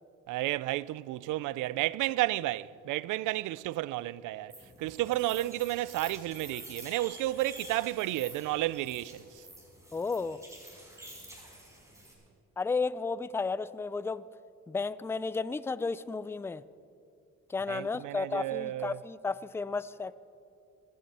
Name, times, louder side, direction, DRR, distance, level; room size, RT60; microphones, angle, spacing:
voice 1, 0.3-9.4 17.7-19.0, right 16 dB, 85° right, 0.5 m, -32 dB
sound 1, 4.5-12.1, right 1 dB, 10° right, 4.6 m, -49 dB
voice 2, 9.9-10.4 12.6-14.2 14.7-16.6 17.5-20.2, left 4 dB, 10° left, 0.4 m, -33 dB
20.5 x 15.5 x 4.2 m
cardioid pair, 90°, 30 cm